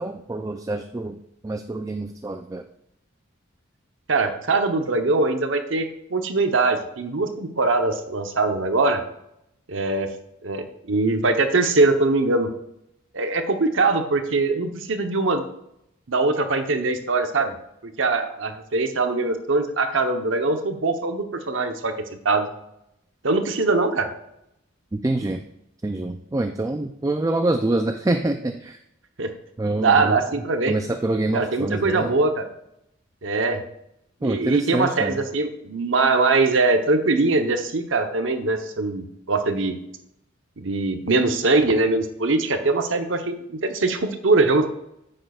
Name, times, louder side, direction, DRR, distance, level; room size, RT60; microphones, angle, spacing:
voice 1, 0.0-2.6 24.9-25.4 25.8-28.8 29.6-30.2 30.7-32.1 34.2-35.2, right 2 dB, 15° right, 6 dB, 0.3 m, -26 dB
voice 2, 4.1-9.0 9.7-10.1 10.4-12.5 13.1-15.4 16.1-17.5 17.8-21.9 22.2-22.5 23.2-24.1 29.2-29.3 29.8-30.7 31.3-32.4 33.2-33.6 34.2-39.8 40.6-44.7, right 3 dB, 70° right, 6 dB, 0.9 m, -22 dB
10.5 x 7.7 x 2.4 m, 0.80 s
head